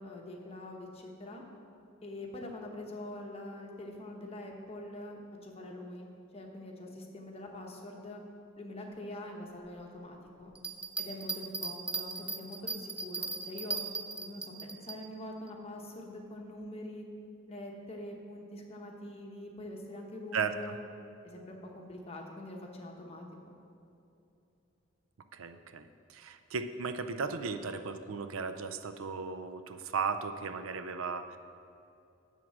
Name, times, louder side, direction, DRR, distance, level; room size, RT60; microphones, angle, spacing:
voice 1, 0.0-1.4 2.0-8.2 8.6-10.5 11.0-13.8 14.2-14.5 14.8-17.0 17.5-20.8 21.3-23.2, left 1 dB, 30° left, 1 dB, 1.0 m, -44 dB
Bell, 10.5-15.0 15.5-15.6, right 3 dB, 5° right, 0.3 m, -37 dB
voice 2, 20.3-20.8 25.3-31.4, right 5 dB, 80° right, 9 dB, 0.5 m, -36 dB
10.5 x 3.7 x 7.3 m, 2.7 s
head